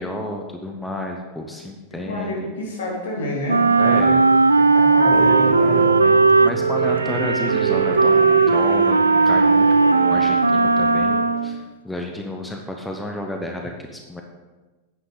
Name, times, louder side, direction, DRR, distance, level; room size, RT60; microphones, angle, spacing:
voice 1, 0.0-2.5 3.8-4.2 5.7-8.2 8.5-14.2, left 1 dB, 5° left, 2 dB, 0.9 m, -31 dB
voice 2, 2.1-4.2 4.6-5.8, left 1 dB, 60° left, -2 dB, 2.8 m, -28 dB
Wind instrument woodwind instrument, 3.5-11.6, right 4 dB, 80° right, 0.3 m, -17 dB
sound 1, 5.1-11.6, right 7 dB, 55° right, 0.7 m, -28 dB
9.7 x 8.5 x 3.9 m, 1.2 s
figure-of-eight pair, 90°, 0 cm